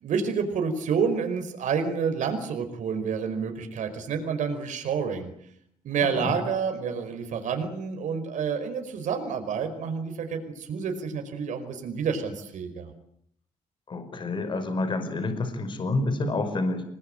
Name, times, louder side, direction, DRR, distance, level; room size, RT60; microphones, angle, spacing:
voice 1, 0.0-5.3 5.8-12.9, right 6 dB, 80° right, 6 dB, 5.0 m, -29 dB
voice 2, 6.0-6.3 13.9-16.8, left 2 dB, 40° left, 9 dB, 5.3 m, -28 dB
28.5 x 21.5 x 9.0 m, 0.70 s
wide cardioid pair, 160°, 13 cm